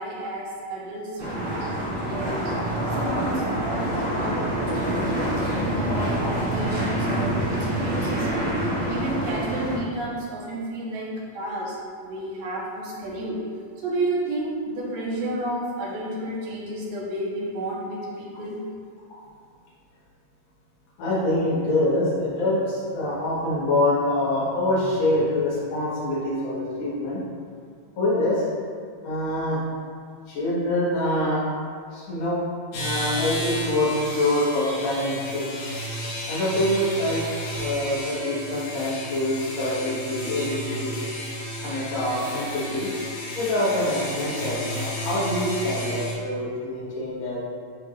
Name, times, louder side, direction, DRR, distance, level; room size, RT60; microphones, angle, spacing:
voice 1, 0.0-2.5 3.0-4.5 5.4-8.3 8.9-13.4 13.8-18.6, right 1 dB, 85° right, -5 dB, 2.9 m, -31 dB
sound 1, 1.2-9.8, right 1 dB, 50° right, 1.5 m, -26 dB
voice 2, 21.0-27.2 28.0-28.4 29.0-29.6 30.3-31.4 31.9-32.4 32.7-35.5 36.3-41.0 41.6-42.9 43.3-47.4, left 1 dB, 55° left, -8 dB, 2.5 m, -25 dB
sound 2, 32.7-46.1, equal, 85° left, 3.3 m, -32 dB
11.0 x 3.8 x 2.6 m, 2.1 s
omnidirectional pair, 4.0 m